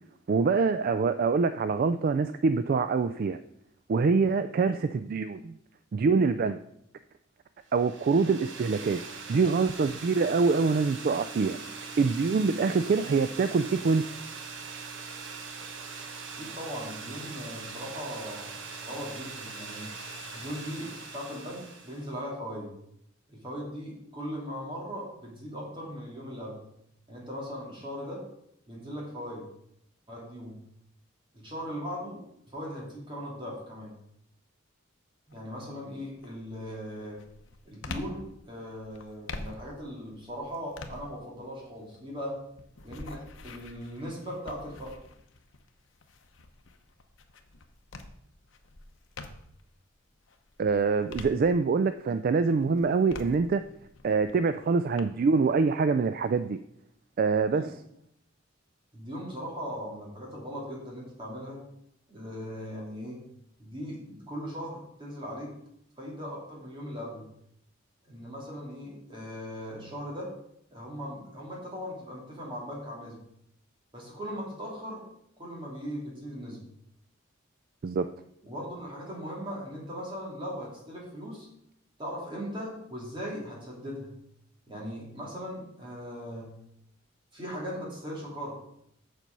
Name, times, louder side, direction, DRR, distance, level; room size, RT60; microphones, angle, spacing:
voice 1, 0.3-3.4 3.9-5.6 5.9-6.6 7.7-9.0 9.3-11.6 12.0-14.1 50.6-53.6 54.0-56.6 57.2-57.8 77.8-78.1, right 4 dB, 45° right, 11 dB, 0.3 m, -25 dB
sound 1, 7.7-22.2, right 4 dB, 65° right, 1.1 m, -42 dB
voice 2, 16.4-19.9 20.3-22.7 23.3-26.6 27.1-28.2 28.7-29.4 30.1-30.6 31.3-32.2 32.5-33.9 35.3-37.2 37.6-42.3 42.8-44.9 57.5-57.7 58.9-61.6 62.1-63.2 63.6-65.5 66.0-67.2 68.1-70.3 70.7-73.2 73.9-75.0 75.4-76.6 78.5-81.5 82.0-84.1 84.7-86.5 87.3-88.6, equal, 25° right, -3 dB, 3.0 m, -39 dB
sound 2, 35.3-35.7 36.2-49.7 50.2-52.0 52.4-55.0, left 3 dB, 70° left, 0.9 m, -46 dB
7.4 x 6.7 x 5.4 m, 0.75 s
head